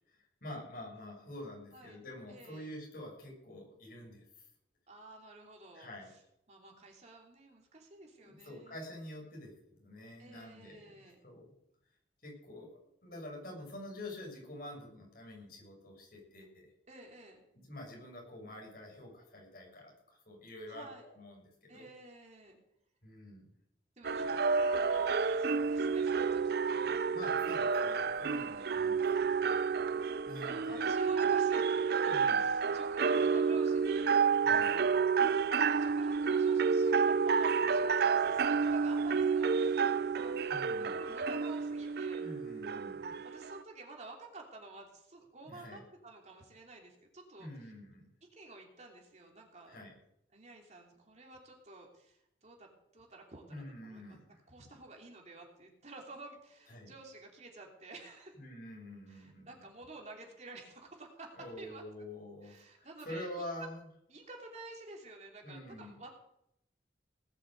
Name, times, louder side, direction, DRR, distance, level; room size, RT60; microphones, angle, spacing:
voice 1, 0.4-4.3 5.7-6.1 8.2-11.5 12.2-16.7 17.5-21.9 23.0-23.5 27.1-29.4 30.3-30.9 32.1-32.4 34.4-34.7 40.5-40.9 42.2-43.2 45.4-45.8 47.4-48.1 49.7-49.9 53.5-54.4 56.7-56.9 58.3-59.5 61.3-63.9 65.4-66.1, left 1 dB, 50° left, 0 dB, 6.8 m, -47 dB
voice 2, 2.3-2.7 4.9-6.2 6.5-8.8 10.2-11.2 16.9-17.4 20.7-21.0 21.7-22.6 24.0-27.1 28.3-28.7 30.4-34.1 34.5-34.9 35.5-42.2 43.3-47.7 48.3-49.8 50.3-58.3 59.1-61.8 62.4-63.7 64.1-66.1, right 2 dB, 40° right, 1 dB, 3.1 m, -51 dB
sound 1, 24.0-43.6, right 5 dB, 55° right, 0.4 m, -30 dB
19.0 x 7.8 x 8.0 m, 0.78 s
head